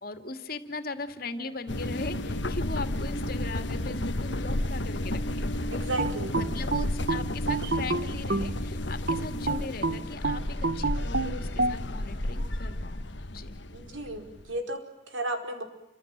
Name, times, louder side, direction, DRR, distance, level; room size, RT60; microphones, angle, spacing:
voice 1, 0.0-5.5 6.3-13.0 13.3-13.6, left 3 dB, 50° left, 8 dB, 2.5 m, -39 dB
sound 1, 1.7-14.6, left 1 dB, 65° left, 1.4 m, -32 dB
voice 2, 5.7-6.3 13.7-14.8 15.1-15.6, right 1 dB, 80° right, 5 dB, 5.0 m, -33 dB
sound 2, 6.0-8.6 9.1-11.8, right 3 dB, 55° right, 1.1 m, -28 dB
29.0 x 26.0 x 7.6 m, 0.87 s
head